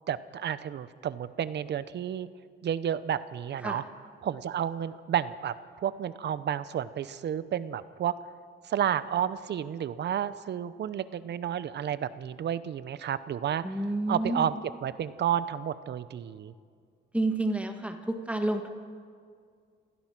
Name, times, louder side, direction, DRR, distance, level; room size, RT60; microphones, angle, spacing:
voice 1, 0.1-2.3 2.6-3.8 4.2-5.5 5.8-8.1 8.6-13.8 14.1-16.5, right 9 dB, 60° right, 15 dB, 0.9 m, -31 dB
voice 2, 13.6-14.5 17.1-18.7, right 2 dB, 5° right, 5 dB, 2.0 m, -29 dB
28.5 x 15.5 x 6.1 m, 2.2 s
cardioid pair, 90°, 20 cm